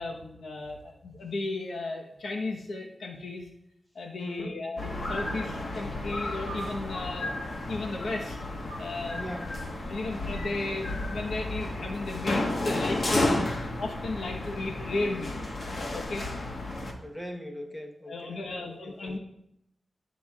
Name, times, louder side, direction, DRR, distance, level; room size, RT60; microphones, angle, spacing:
voice 1, 0.0-3.5 3.9-7.4 7.7-8.4 8.8-9.2 9.9-13.4 13.8-15.4 15.9-16.3 18.1-19.2, left 2 dB, 85° left, 1 dB, 1.0 m, -34 dB
voice 2, 4.2-4.6 9.2-9.6 13.2-13.6 17.0-19.2, left 1 dB, 15° left, 2 dB, 1.1 m, -40 dB
sound 1, 4.8-16.9, left 2 dB, 50° left, 1.2 m, -32 dB
18.0 x 6.1 x 2.4 m, 0.81 s
wide cardioid pair, 125°, 0 cm